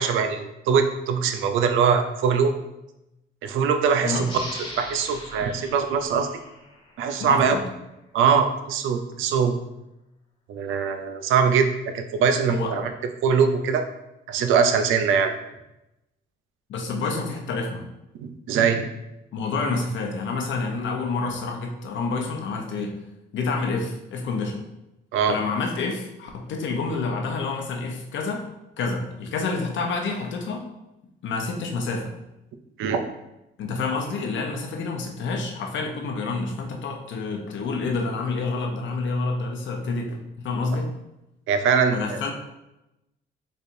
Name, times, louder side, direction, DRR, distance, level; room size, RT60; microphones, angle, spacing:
voice 1, 0.0-2.6 3.4-4.3 4.8-6.3 7.0-7.6 8.1-9.6 10.5-12.9 13.2-13.8 14.3-15.3 18.2-18.9 25.1-25.4 32.8-33.0 41.5-42.2, right 6 dB, 85° right, 7 dB, 0.5 m, -22 dB
sound 1, 4.2-7.5, left 1 dB, 25° left, 1.1 m, -40 dB
voice 2, 7.2-7.7 12.5-12.7 16.7-17.9 19.3-23.0 23.3-24.6 25.3-28.5 28.8-30.6 31.2-32.1 33.6-40.9 41.9-42.3, left 3 dB, 70° left, 2 dB, 0.8 m, -28 dB
4.2 x 3.3 x 2.6 m, 0.92 s
cardioid pair, 90°, 20 cm